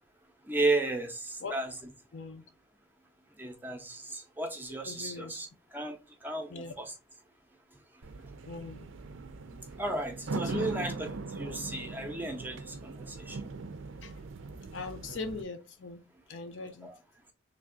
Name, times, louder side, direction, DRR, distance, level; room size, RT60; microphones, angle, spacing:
voice 1, 0.4-1.9 3.3-7.0 8.2-8.3 9.8-13.5 16.8-17.0, right 2 dB, 10° right, 0.5 m, -34 dB
voice 2, 2.1-2.4 4.9-5.4 6.5-6.7 8.4-8.9 10.4-10.7 14.0-14.1 14.7-16.9, left 4 dB, 80° left, 0.6 m, -41 dB
sound 1, 8.0-15.4, right 3 dB, 90° right, 0.5 m, -40 dB
3.3 x 2.5 x 3.7 m
head